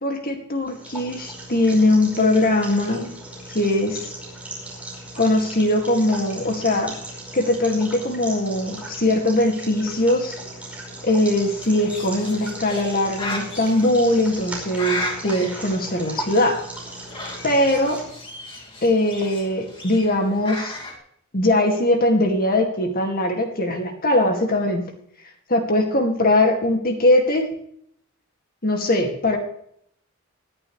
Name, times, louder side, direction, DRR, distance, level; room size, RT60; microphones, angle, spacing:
voice 1, 0.0-3.1 3.5-4.1 5.1-6.9 7.3-10.4 11.0-16.6 17.4-18.0 18.8-20.8 21.3-24.9 25.5-27.5 28.6-29.4, left 1 dB, 45° left, 4 dB, 2.3 m, -21 dB
sound 1, 0.6-18.0, right 1 dB, 5° right, 5.3 m, -37 dB
Bird, 11.1-21.0, left 1 dB, 25° left, 2.4 m, -36 dB
19.5 x 11.0 x 3.3 m, 0.68 s
head